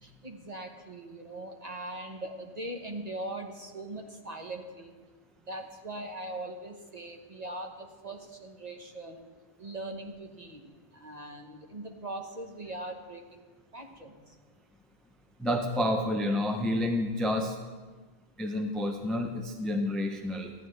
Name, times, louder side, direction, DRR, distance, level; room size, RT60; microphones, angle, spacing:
voice 1, 0.0-5.0 5.4-9.3 9.6-13.5 13.7-14.3, right 1 dB, 40° right, 2 dB, 1.1 m, -41 dB
voice 2, 15.4-17.6 18.4-20.5, left 1 dB, ahead, 4 dB, 0.5 m, -29 dB
14.5 x 10.5 x 3.3 m, 1.3 s
omnidirectional pair, 1.1 m